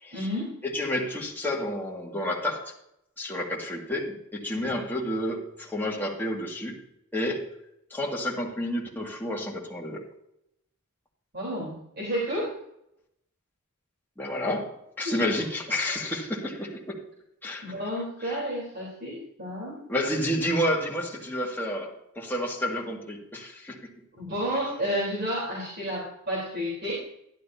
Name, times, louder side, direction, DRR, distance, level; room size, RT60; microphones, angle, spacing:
voice 1, 0.1-0.6 4.5-4.8 11.3-12.5 15.0-15.2 17.6-19.8 24.1-26.9, equal, 50° right, -6 dB, 3.9 m, -31 dB
voice 2, 0.6-2.6 3.2-6.8 7.1-7.5 7.9-10.0 14.2-17.0 17.4-17.6 18.2-18.3 19.9-21.9 22.2-23.8, left 1 dB, 10° left, -4 dB, 2.2 m, -30 dB
12.0 x 11.5 x 2.8 m, 0.78 s
head